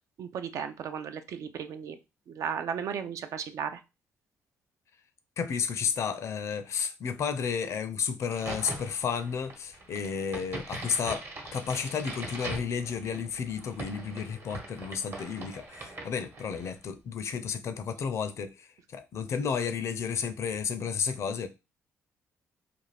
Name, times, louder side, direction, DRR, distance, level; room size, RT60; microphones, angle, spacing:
voice 1, 0.2-2.0 2.3-3.8, right 7 dB, 70° right, 0.4 m, -35 dB
voice 2, 5.4-11.2 11.5-21.5, left 6 dB, 60° left, 0.4 m, -32 dB
Crack, 8.2-16.8, right 2 dB, 50° right, 1.0 m, -42 dB
2.5 x 2.3 x 3.2 m
cardioid pair, 80°, 6 cm